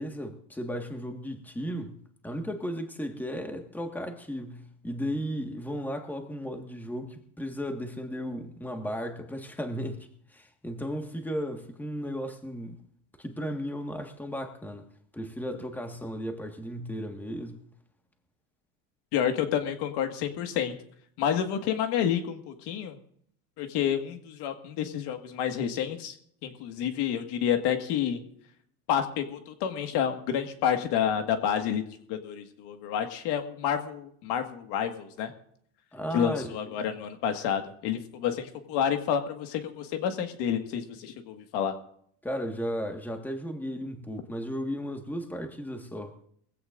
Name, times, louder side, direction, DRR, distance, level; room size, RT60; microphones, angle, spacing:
voice 1, 0.0-2.0 2.2-12.8 13.2-14.9 15.1-17.6 35.9-36.7 42.2-46.3, equal, 5° left, 1.7 m, -35 dB
voice 2, 19.1-20.7 21.2-23.0 23.6-26.2 26.4-28.2 28.9-35.3 36.1-41.7, left 9 dB, 60° left, 1.9 m, -29 dB
21.5 x 16.0 x 2.6 m
supercardioid pair, 125°, 46 cm